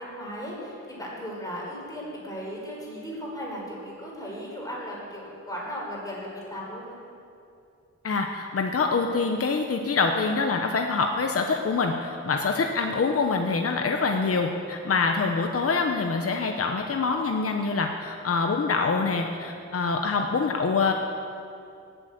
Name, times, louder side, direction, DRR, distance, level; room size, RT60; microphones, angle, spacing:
voice 1, 0.0-7.0, equal, 10° left, -4 dB, 4.8 m, -36 dB
voice 2, 8.0-20.9, left 4 dB, 50° left, 3 dB, 0.9 m, -25 dB
18.5 x 8.1 x 8.0 m, 2.5 s
wide cardioid pair, 145°, 30 cm